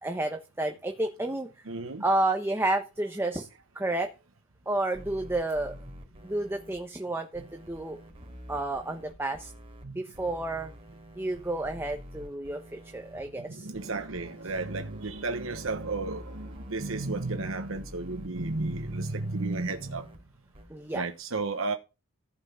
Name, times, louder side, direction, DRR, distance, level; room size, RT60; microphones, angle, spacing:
voice 1, 0.0-1.5 2.0-3.5 3.7-4.1 4.7-5.8 6.2-7.4 7.7-8.0 8.5-9.5 9.9-10.7 11.1-13.7 20.7-21.0, right 2 dB, 10° right, 1.2 m, -30 dB
voice 2, 1.7-2.0 9.8-10.0 13.5-20.1 20.9-21.7, right 3 dB, 70° right, 1.1 m, -33 dB
sound 1, 4.9-6.8 7.3-9.8 10.1-13.2 13.7-20.2 20.5-20.6, equal, 30° right, 3.3 m, -47 dB
15.0 x 6.1 x 7.1 m
head